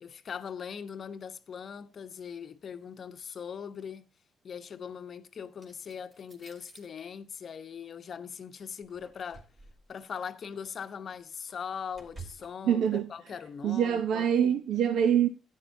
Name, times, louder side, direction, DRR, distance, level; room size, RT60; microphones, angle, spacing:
voice 1, 0.0-4.1 4.4-9.5 9.9-14.6, left 7 dB, 55° left, 0.8 m, -41 dB
sound 1, 5.6-6.9 8.8-10.0 10.5-10.7 11.1-12.5, right 4 dB, 40° right, 2.9 m, -51 dB
voice 2, 12.6-13.1 13.6-15.3, right 9 dB, 70° right, 0.7 m, -25 dB
11.0 x 9.2 x 2.7 m
supercardioid pair, 60°, 0 cm